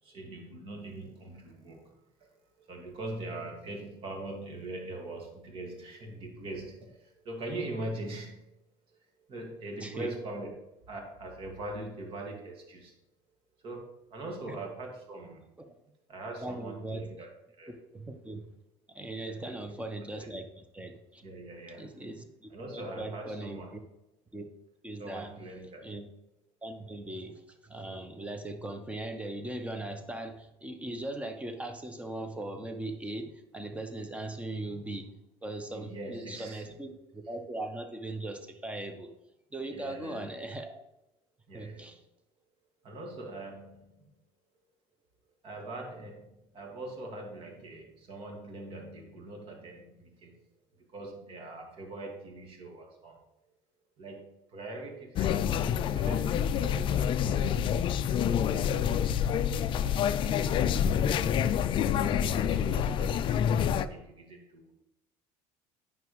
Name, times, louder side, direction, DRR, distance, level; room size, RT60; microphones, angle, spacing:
voice 1, 0.0-2.3 2.6-8.5 8.9-10.5 10.9-12.9 13.6-15.5 16.1-17.3 17.6-17.7 19.2-19.7 20.2-20.3 21.2-22.1 22.5-23.7 25.0-25.9 35.7-36.7 39.7-40.2 41.5-41.9 42.8-44.1 45.4-50.4 50.7-53.2 54.0-59.2 59.8-61.5 62.0-64.7, right 2 dB, 45° right, 1 dB, 2.0 m, -42 dB
voice 2, 9.8-10.1 14.5-14.6 15.6-15.7 16.4-17.1 17.9-18.4 18.9-21.2 21.8-23.8 24.3-24.5 24.8-25.3 25.8-26.1 26.6-39.1 39.5-40.8 41.5-42.0, right 2 dB, 10° right, 6 dB, 0.9 m, -39 dB
sound 1, 55.2-63.9, left 9 dB, 45° left, 0.4 m, -27 dB
9.1 x 5.9 x 3.2 m, 0.90 s
cardioid pair, 115°, 12 cm